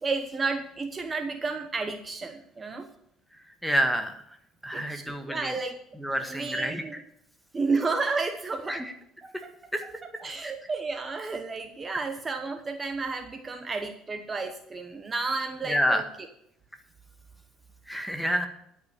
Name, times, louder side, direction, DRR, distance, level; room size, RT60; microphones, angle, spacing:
voice 1, 0.0-2.9 4.7-5.8 6.2-7.0 7.5-8.8 9.2-9.3 10.0-16.0, right 4 dB, 25° right, 7 dB, 1.0 m, -32 dB
voice 2, 3.6-4.1 4.6-5.5 6.0-7.0 8.7-8.9 9.7-9.8 10.4-10.5 15.7-16.0 17.9-18.5, equal, ahead, 5 dB, 1.4 m, -28 dB
11.5 x 5.6 x 6.8 m, 0.73 s
supercardioid pair, 95°, 0 cm